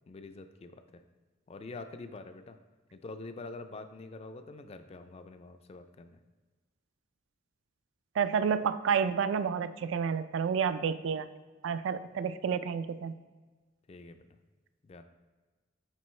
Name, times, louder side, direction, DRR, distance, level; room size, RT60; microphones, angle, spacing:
voice 1, 0.1-1.0 1.5-2.6 2.9-6.2 13.9-14.3 14.8-15.0, left 3 dB, 30° left, 9 dB, 0.3 m, -46 dB
voice 2, 8.2-11.3 11.6-13.2, right 6 dB, 70° right, 13 dB, 0.3 m, -30 dB
8.9 x 3.7 x 3.1 m, 1.3 s
head